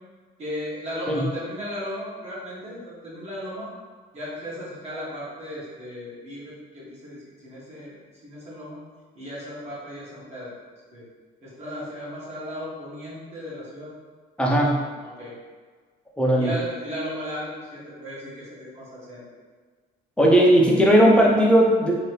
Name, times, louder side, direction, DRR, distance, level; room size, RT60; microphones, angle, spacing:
voice 1, 0.4-3.7 4.1-8.8 9.1-10.5 10.9-11.1 11.4-13.9 15.0-15.3 16.4-19.2, equal, 40° right, -7 dB, 1.0 m, -36 dB
voice 2, 14.4-14.8 16.2-16.5 20.2-21.9, right 1 dB, 5° left, -3 dB, 0.6 m, -17 dB
2.8 x 2.6 x 3.2 m, 1.5 s
cardioid pair, 110°, 17 cm